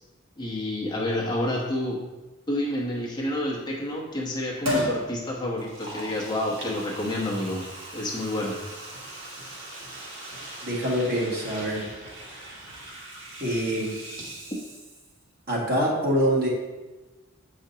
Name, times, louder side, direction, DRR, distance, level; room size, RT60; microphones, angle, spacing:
voice 1, 0.4-2.0 2.5-7.7 7.9-8.6, left 1 dB, 20° left, -4 dB, 0.9 m, -29 dB
Liquid, 4.6-5.0 5.6-15.2 15.5-15.6, equal, 75° right, 1.6 m, -36 dB
voice 2, 10.6-11.9 13.4-14.0 15.5-16.5, equal, 50° right, -5 dB, 1.8 m, -25 dB
7.9 x 5.1 x 2.8 m, 1.2 s
head